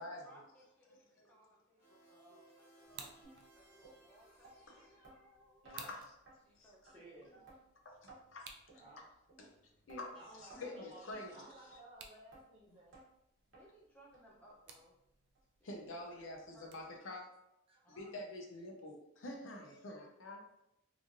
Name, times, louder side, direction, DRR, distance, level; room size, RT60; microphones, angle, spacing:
voice 1, 0.0-3.1 3.5-4.9 6.4-7.5 10.5-10.6 13.5-15.0 15.6-17.0 17.8-18.1, equal, 5° left, -4 dB, 0.6 m, -64 dB
sound 1, 1.8-6.1, right 1 dB, 50° left, 0.9 m, -65 dB
sound 2, 2.8-17.0, right 6 dB, 55° right, 0.3 m, -60 dB
sound 3, 3.2-3.4 3.8-4.0 4.4-4.5 5.0-5.2 5.6-5.8 6.3-6.4 6.9-7.0 7.5-7.6 8.1-8.2 8.7-8.8 9.3-9.4 9.9-10.0 10.5-10.7 11.1-11.2 11.7-11.8 12.3-12.4 12.9-13.1 13.5-13.6 14.1-14.2 14.7-14.8 15.4-15.5 16.0-16.1, right 2 dB, 70° right, 0.9 m, -57 dB
voice 2, 5.7-6.1 6.6-6.7 7.9-8.5 9.4-9.5 9.9-11.8 12.7-12.8 15.6-17.2 17.9-20.5, left 1 dB, 85° left, 2 dB, 0.6 m, -47 dB
voice 3, 6.5-7.4 8.7-9.0 10.1-12.9 17.7-17.8 19.6-19.7, right 1 dB, 30° right, -4 dB, 0.7 m, -57 dB
3.0 x 2.5 x 2.5 m, 0.82 s
head